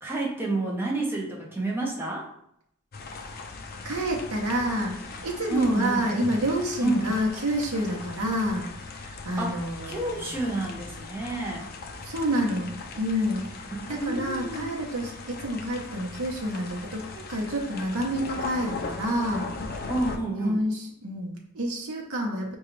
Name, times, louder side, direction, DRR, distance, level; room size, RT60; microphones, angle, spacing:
voice 1, 0.0-2.3 5.5-6.1 6.8-7.1 9.4-9.6 9.9-11.7 13.7-14.7 19.9-20.6, right 2 dB, 10° right, -3 dB, 0.7 m, -29 dB
sound 1, 2.9-20.2, left 3 dB, 45° left, 0.4 m, -39 dB
voice 2, 3.8-5.0 5.2-10.2 12.0-13.5 13.9-19.5 20.4-22.6, equal, 85° right, -1 dB, 0.8 m, -28 dB
4.9 x 2.3 x 3.1 m, 0.73 s
head